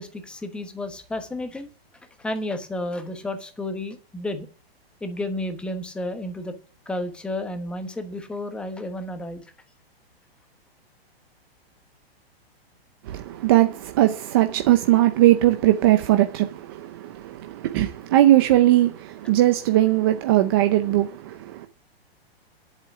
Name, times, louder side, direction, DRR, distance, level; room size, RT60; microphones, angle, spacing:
voice 1, 0.0-1.7 2.2-4.5 5.0-6.5 6.9-9.4, left 1 dB, 5° left, 1.1 m, -31 dB
voice 2, 13.0-21.7, right 14 dB, 25° right, 0.6 m, -19 dB
10.5 x 8.3 x 7.1 m
hypercardioid pair, 165°, 31 cm